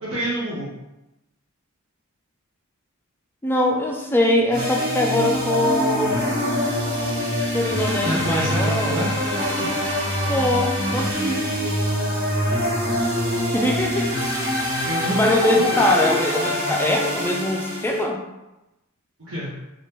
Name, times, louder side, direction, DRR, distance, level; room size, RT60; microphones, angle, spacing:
voice 1, 0.0-0.7 8.0-9.1 9.4-9.7 14.8-15.6 19.2-19.5, equal, 65° right, -9 dB, 0.8 m, -27 dB
voice 2, 3.4-6.3 7.5-9.0 10.3-11.5 13.5-14.1 15.0-18.2, left 1 dB, 10° left, 0 dB, 0.3 m, -22 dB
sound 1, 4.5-18.0, equal, 50° right, 1.3 m, -24 dB
2.7 x 2.4 x 3.5 m, 0.96 s
head